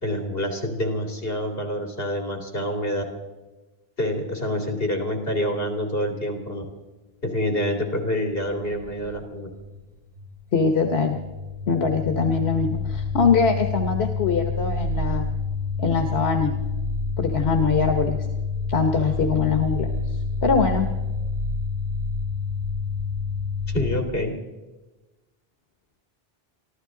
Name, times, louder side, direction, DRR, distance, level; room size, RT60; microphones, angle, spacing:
voice 1, 0.0-3.0 4.0-6.6 7.2-9.5 23.7-24.3, equal, 65° left, 3 dB, 2.9 m, -27 dB
sound 1, 8.7-9.9 10.2-24.0, left 4 dB, 85° right, 3.5 m, -28 dB
voice 2, 10.5-11.2 11.7-15.3 15.8-16.5 17.2-18.3 18.7-20.9, left 5 dB, 85° left, 5 dB, 1.4 m, -22 dB
24.5 x 14.5 x 3.8 m, 1.1 s
omnidirectional pair, 1.0 m